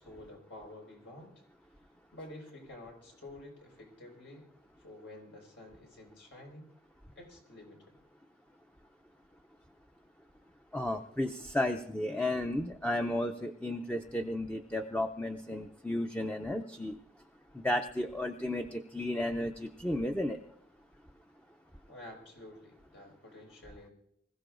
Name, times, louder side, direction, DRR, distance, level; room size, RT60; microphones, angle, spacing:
voice 1, 0.0-1.4 2.1-4.5 4.8-6.7 7.2-8.0 21.9-23.9, left 1 dB, 80° left, 1 dB, 5.1 m, -50 dB
voice 2, 10.7-17.0 17.5-20.4, left 1 dB, 5° left, 5 dB, 0.5 m, -33 dB
25.5 x 15.5 x 2.5 m, 0.75 s
head